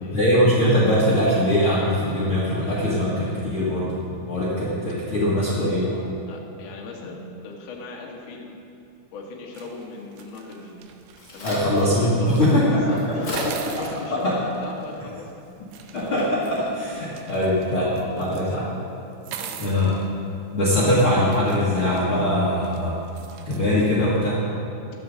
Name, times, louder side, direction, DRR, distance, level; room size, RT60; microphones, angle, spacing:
voice 1, 0.0-3.9 4.2-5.9 11.4-13.0 13.6-13.7 14.1-14.3 15.9-18.6 19.6-19.9 20.5-23.0 23.4-24.4, left 1 dB, 55° left, -9 dB, 1.5 m, -21 dB
voice 2, 5.2-8.5 9.1-10.8 11.3-11.6 12.0-15.3 17.0-17.1 17.9-18.7 19.2-19.8, left 3 dB, 75° left, -1 dB, 1.5 m, -38 dB
sound 1, 9.5-11.9 12.2-12.6 13.3-15.0 15.7-18.6 19.1-20.1 20.8-20.9 21.3-23.7, right 8 dB, 90° right, 3.3 m, -42 dB
Crack, 10.7-17.7, equal, 25° left, 2.6 m, -39 dB
14.5 x 12.0 x 3.8 m, 2.7 s
omnidirectional pair, 5.5 m